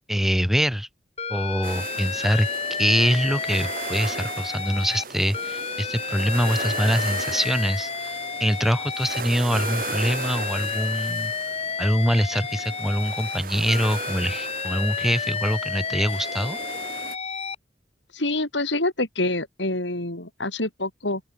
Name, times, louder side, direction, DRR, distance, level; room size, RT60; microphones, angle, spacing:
voice 1, 0.1-0.9 1.3-2.5 2.8-11.3 11.8-16.6, equal, ahead, 4.0 m, -24 dB
Alarm, 1.2-5.0 5.3-9.2 9.5-13.4 13.7-17.6, left 6 dB, 35° left, 4.3 m, -31 dB
sound 1, 1.6-17.2, right 4 dB, 50° right, 6.6 m, -36 dB
voice 2, 18.1-21.2, left 2 dB, 85° left, 5.8 m, -26 dB
open air
head